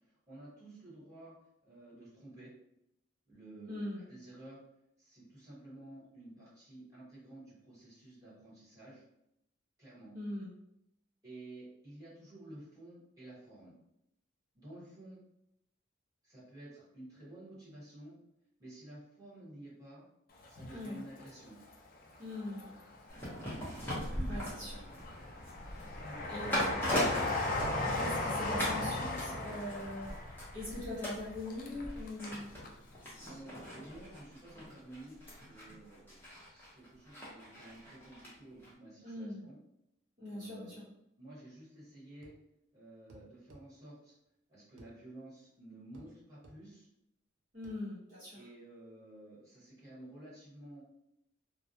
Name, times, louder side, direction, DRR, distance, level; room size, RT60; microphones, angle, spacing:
voice 1, 0.0-1.3 1.6-2.5 3.2-4.6 5.0-9.0 9.8-10.1 11.2-13.7 14.5-15.2 16.2-18.2 18.6-20.0 20.5-21.6 25.9-26.4 33.2-39.6 40.3-40.8 41.2-42.3 42.7-44.2 44.5-46.9 48.3-50.8, right 1 dB, 20° right, -9 dB, 1.1 m, -52 dB
voice 2, 3.7-4.0 10.1-10.5 20.7-21.0 22.2-22.7 24.3-24.9 25.7-25.9 26.3-26.7 27.9-30.1 30.5-32.5 39.0-39.4 40.2-40.8 47.5-48.4, left 1 dB, 40° right, -11 dB, 0.8 m, -41 dB
Train, 20.4-21.7 22.1-23.1 23.6-32.4 32.6-32.7, left 2 dB, 45° left, 0.3 m, -37 dB
sound 1, 23.1-28.3 28.6-28.9 29.2-38.3 38.6-38.7, equal, 10° left, 0.7 m, -40 dB
sound 2, 42.2-42.4 43.1-43.7 44.8-44.9 45.9-46.1 46.4-46.6 47.6-47.8, right 2 dB, 75° right, 0.4 m, -56 dB
2.2 x 2.1 x 2.7 m, 0.80 s
head